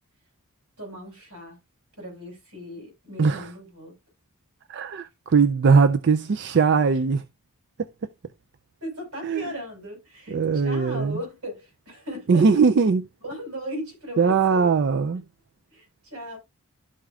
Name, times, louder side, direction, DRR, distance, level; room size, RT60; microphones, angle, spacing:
voice 1, 0.8-1.6 2.0-3.9 8.8-12.4 13.2-14.8 15.7-16.4, equal, 75° right, 5.9 m, -37 dB
voice 2, 4.7-7.2 9.2-9.4 10.3-11.2 12.3-13.0 14.2-15.2, right 5 dB, 50° right, 0.4 m, -20 dB
12.5 x 4.8 x 2.4 m
head